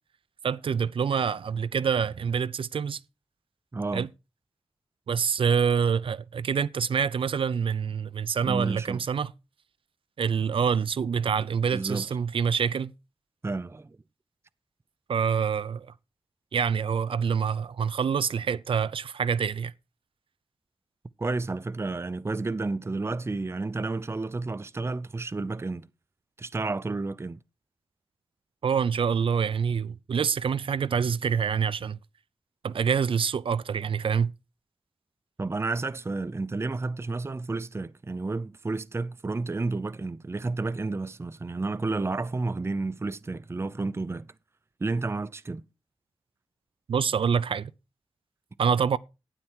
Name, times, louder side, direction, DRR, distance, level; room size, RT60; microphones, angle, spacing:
voice 1, 0.4-3.0 3.9-4.1 5.1-9.3 10.2-12.9 15.1-15.9 16.5-19.7 28.6-32.0 32.6-34.3 46.9-47.7 48.6-49.0, right 6 dB, 80° right, 0.5 m, -26 dB
voice 2, 3.7-4.1 8.4-9.0 11.7-12.1 13.4-14.0 21.2-25.9 26.4-27.4 35.4-44.3 44.8-45.6, right 3 dB, 30° right, 0.6 m, -31 dB
12.5 x 9.3 x 4.5 m
wide cardioid pair, 80°, 9 cm